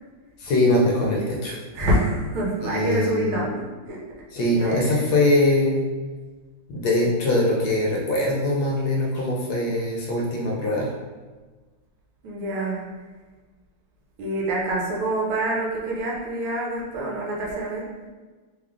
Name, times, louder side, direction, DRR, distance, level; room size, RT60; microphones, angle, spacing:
voice 1, 0.4-1.6 2.6-3.5 4.3-5.9 6.7-10.9, left 1 dB, 70° left, -2 dB, 1.2 m, -22 dB
voice 2, 1.7-4.0 4.6-5.0 12.2-12.9 14.2-17.9, right 1 dB, 80° right, -3 dB, 1.5 m, -26 dB
3.6 x 2.3 x 3.5 m, 1.3 s
omnidirectional pair, 2.4 m